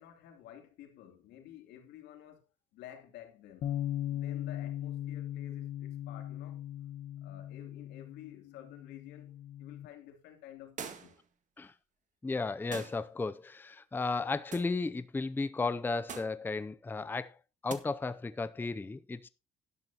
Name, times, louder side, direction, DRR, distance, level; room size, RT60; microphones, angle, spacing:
voice 1, 0.0-2.5 2.7-3.7 4.1-6.6 7.2-11.2, left 11 dB, 90° left, 3.0 m, -52 dB
Bass guitar, 3.6-9.9, left 12 dB, 60° left, 1.4 m, -39 dB
sound 1, 10.8-11.3 12.7-13.0 14.5-14.8 16.1-16.4 17.7-17.8, right 7 dB, 45° right, 1.8 m, -43 dB
voice 2, 12.2-17.4 17.6-19.3, left 3 dB, 10° left, 0.5 m, -34 dB
12.0 x 11.0 x 2.9 m
cardioid pair, 110°, 17 cm